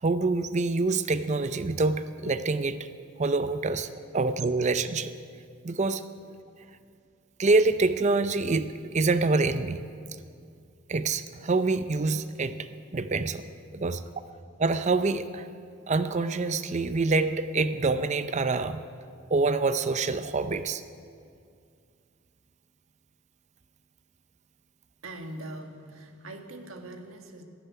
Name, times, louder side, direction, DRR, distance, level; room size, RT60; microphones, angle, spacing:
voice 1, 0.0-2.9 3.2-5.1 5.6-6.0 7.4-9.8 10.9-13.4 13.7-14.0 14.6-15.5 15.9-18.8 19.3-20.8, right 3 dB, 35° right, 12 dB, 0.5 m, -26 dB
voice 2, 25.0-27.4, right 1 dB, 80° right, 5 dB, 1.7 m, -42 dB
12.5 x 12.0 x 9.5 m, 2.3 s
head